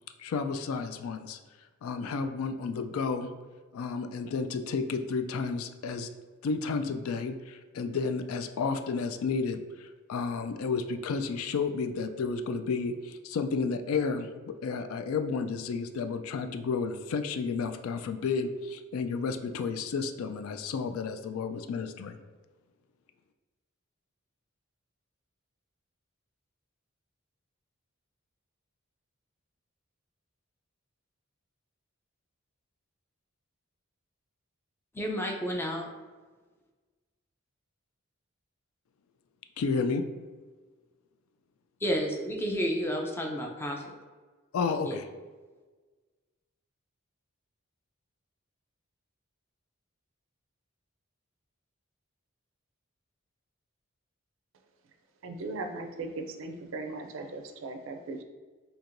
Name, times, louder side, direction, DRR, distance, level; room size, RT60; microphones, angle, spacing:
voice 1, 0.2-1.4 1.8-3.3 3.7-6.1 6.4-22.2 39.6-40.0 44.5-45.1, left 4 dB, 85° left, 8 dB, 0.3 m, -32 dB
voice 2, 34.9-35.9 41.8-43.8 44.8-45.0, equal, 10° left, 1 dB, 0.4 m, -31 dB
voice 3, 55.2-58.2, right 3 dB, 65° right, 6 dB, 0.4 m, -38 dB
4.5 x 2.8 x 2.5 m, 1.4 s
head